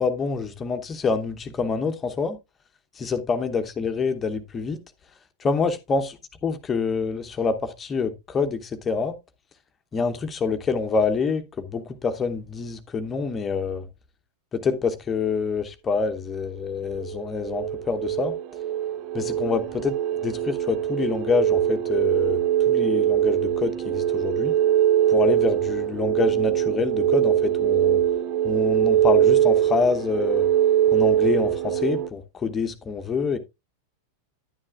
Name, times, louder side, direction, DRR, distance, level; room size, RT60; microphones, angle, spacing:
voice 1, 0.0-2.4 2.9-4.8 5.4-6.1 6.4-9.2 9.9-13.9 14.5-18.3 19.1-24.5 25.1-28.0 28.4-30.5 30.9-33.4, left 5 dB, 20° left, 0.9 m, -26 dB
sound 1, 16.9-32.1, right 11 dB, 35° right, 0.5 m, -22 dB
10.5 x 9.7 x 2.3 m
figure-of-eight pair, 90°, 0 cm